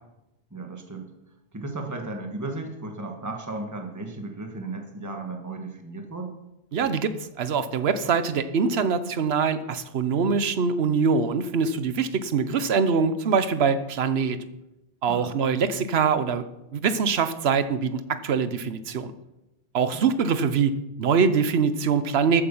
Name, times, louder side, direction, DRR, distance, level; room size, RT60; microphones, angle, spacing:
voice 1, 0.5-1.1 1.5-6.3 15.1-15.4 19.9-20.1, right 2 dB, 15° right, 3 dB, 1.5 m, -35 dB
voice 2, 6.7-7.1 7.4-14.4 15.0-16.4 16.7-19.1 19.7-20.7 21.0-22.4, right 5 dB, 70° right, 12 dB, 1.1 m, -23 dB
14.0 x 8.8 x 5.5 m, 0.93 s
omnidirectional pair, 1.1 m